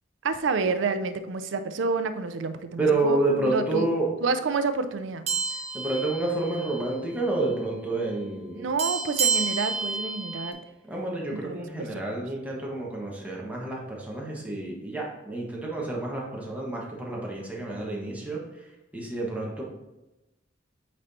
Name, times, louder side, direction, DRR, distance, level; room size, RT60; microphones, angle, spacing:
voice 1, 0.2-3.9 4.2-5.2 8.5-10.6 11.3-12.0, right 4 dB, 90° right, 10 dB, 0.5 m, -29 dB
voice 2, 2.8-4.1 5.7-8.7 10.9-18.4 18.9-19.6, right 2 dB, 10° right, -3 dB, 1.2 m, -29 dB
sound 1, 5.3-6.9 7.2-7.4 8.8-10.5, right 4 dB, 35° right, 0.8 m, -29 dB
8.5 x 4.2 x 2.7 m, 0.99 s
head